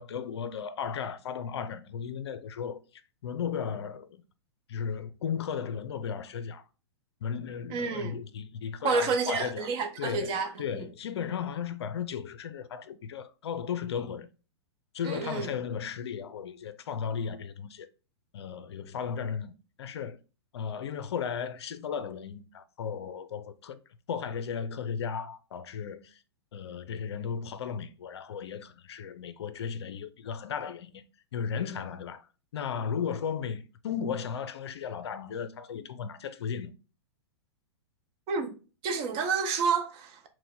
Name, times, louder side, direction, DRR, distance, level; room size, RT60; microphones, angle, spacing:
voice 1, 0.0-2.8 3.2-4.2 4.7-6.6 7.2-9.7 10.0-14.3 14.9-17.9 18.3-19.5 19.8-20.2 20.5-23.8 24.1-26.2 26.5-31.0 31.3-32.3 32.5-36.7, left 7 dB, 70° left, 0.4 m, -35 dB
voice 2, 7.7-8.2 8.8-10.8 15.0-15.5 38.3-38.5 38.8-40.3, right 5 dB, 35° right, 0.7 m, -29 dB
4.6 x 2.1 x 3.6 m
hypercardioid pair, 110°, 14 cm